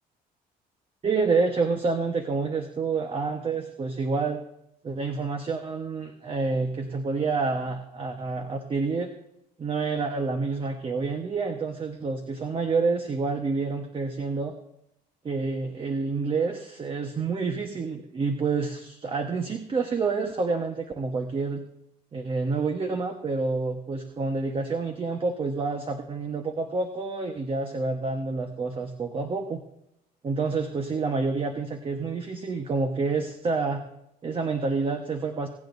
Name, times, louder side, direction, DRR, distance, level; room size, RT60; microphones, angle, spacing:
voice 1, 1.0-4.4 4.8-9.1 9.6-14.5 15.2-21.6 22.1-29.6 30.2-33.8 34.2-35.5, right 4 dB, 30° right, 4 dB, 1.3 m, -28 dB
23.0 x 9.5 x 2.7 m, 0.80 s
cardioid pair, 110°, 17 cm